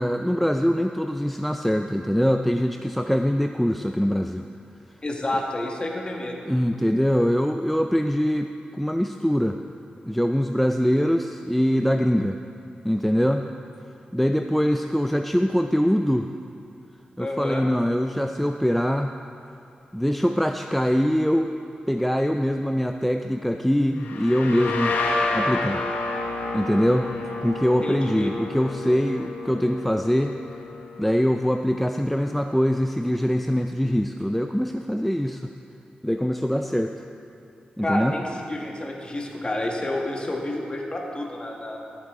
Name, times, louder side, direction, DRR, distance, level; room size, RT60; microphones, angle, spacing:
voice 1, 0.0-4.5 6.5-9.6 10.1-12.4 12.8-13.4 14.1-16.3 17.2-19.1 19.9-21.5 21.9-24.9 25.3-25.8 26.5-27.1 27.4-30.4 31.0-35.5 36.0-37.0 37.8-38.1, equal, 5° left, 6 dB, 0.4 m, -23 dB
voice 2, 5.0-6.5 17.2-17.7 27.8-28.3 37.8-41.8, left 1 dB, 30° left, 0 dB, 1.6 m, -29 dB
sound 1, 24.0-31.5, left 3 dB, 85° left, 1.1 m, -30 dB
13.5 x 8.4 x 3.8 m, 2.6 s
cardioid pair, 60°, 3 cm